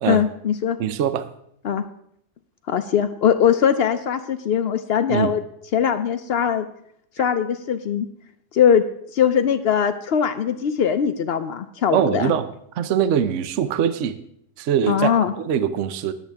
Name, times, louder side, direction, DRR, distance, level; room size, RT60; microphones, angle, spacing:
voice 1, 0.1-0.8 1.6-1.8 2.7-5.4 5.7-6.7 7.2-8.1 8.5-8.8 9.1-12.3 14.9-15.3, left 8 dB, 85° left, 9 dB, 0.5 m, -20 dB
voice 2, 0.8-1.3 5.1-5.3 11.9-12.5 12.7-14.2 14.6-16.1, right 8 dB, 60° right, 12 dB, 0.9 m, -22 dB
21.0 x 8.2 x 3.4 m, 0.70 s
omnidirectional pair, 1.8 m